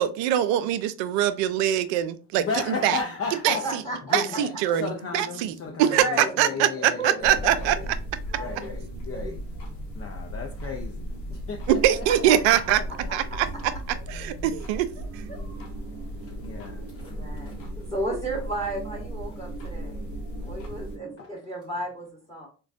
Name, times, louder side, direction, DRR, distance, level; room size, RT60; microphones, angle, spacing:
voice 1, 0.0-2.5 2.8-3.0 3.4-3.5 4.1-5.5 5.8-6.0 6.4-6.9 7.2-7.7 11.7-12.8 13.1-13.2 14.1-14.9, right 11 dB, 65° right, 0.5 m, -22 dB
voice 2, 2.3-3.6 4.1-7.9 8.4-9.4 9.9-12.3 13.2-13.3 16.2-17.9 21.2-21.3, left 5 dB, 30° left, 0.5 m, -35 dB
sound 1, 2.8-21.2, right 3 dB, 30° right, 0.8 m, -46 dB
voice 3, 3.5-4.4 5.9-6.4 7.0-7.9 8.3-8.7 9.1-9.3 12.0-12.7 13.3-13.4 15.0-15.1 15.3-15.4 17.0-20.1 20.4-22.5, right 1 dB, 10° left, 1.1 m, -34 dB
sound 2, 7.2-21.0, equal, 90° left, 1.1 m, -36 dB
3.9 x 2.2 x 2.5 m
hypercardioid pair, 60°, 49 cm